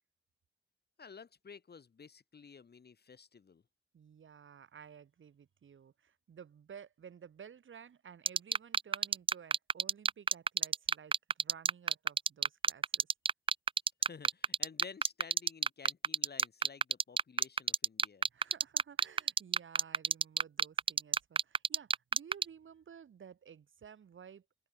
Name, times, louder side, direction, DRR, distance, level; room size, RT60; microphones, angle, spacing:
voice 1, 1.0-3.6 14.0-18.3, left 5 dB, 55° left, 3.4 m, -53 dB
voice 2, 3.9-13.1 18.3-24.4, right 7 dB, 75° right, 3.6 m, -54 dB
sound 1, 8.3-22.4, right 5 dB, 25° right, 0.3 m, -27 dB
wide cardioid pair, 100°, 20 cm